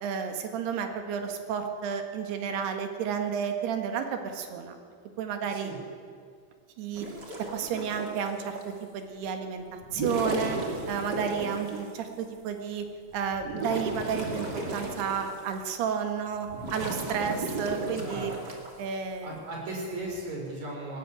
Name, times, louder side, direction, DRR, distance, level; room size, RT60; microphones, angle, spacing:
voice 1, 0.0-4.8 5.2-5.7 6.8-7.1 7.4-10.6 10.9-12.9 13.1-18.4 18.8-19.4, right 7 dB, 80° right, 5 dB, 3.7 m, -32 dB
sound 1, 6.9-8.7 9.8-11.9 12.5-12.6 13.1-15.6 16.0-18.7 19.9-20.2, right 2 dB, 30° right, 2.9 m, -35 dB
voice 2, 17.9-18.6 19.2-21.0, right 2 dB, 45° right, -2 dB, 6.6 m, -37 dB
21.0 x 17.0 x 9.0 m, 2.1 s
omnidirectional pair, 4.6 m